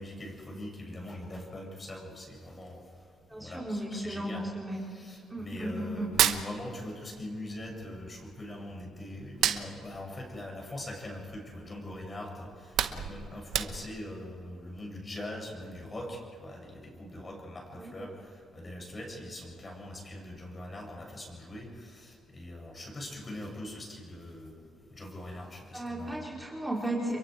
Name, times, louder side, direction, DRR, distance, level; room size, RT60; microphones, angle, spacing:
voice 1, 0.0-2.9 3.4-4.4 4.9-26.3, left 1 dB, 30° left, 0 dB, 7.3 m, -42 dB
voice 2, 3.3-4.9 5.3-6.1 17.8-17.9 25.7-27.2, right 1 dB, 10° right, -4 dB, 4.8 m, -35 dB
Hands, 6.0-7.3 7.5-8.8 9.2-11.6 12.0-12.1 12.5-14.1, right 10 dB, 80° right, 1.1 m, -31 dB
30.0 x 23.0 x 4.8 m, 2.5 s
cardioid pair, 90°, 0 cm